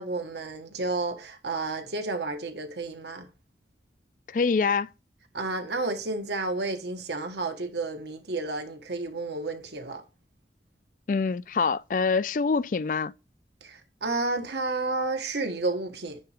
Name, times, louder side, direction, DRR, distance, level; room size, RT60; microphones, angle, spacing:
voice 1, 0.0-3.3 5.3-10.0 13.6-16.2, right 3 dB, 75° right, 1.3 m, -31 dB
voice 2, 4.3-4.9 11.1-13.1, left 4 dB, 45° left, 0.4 m, -25 dB
9.3 x 3.9 x 3.4 m
head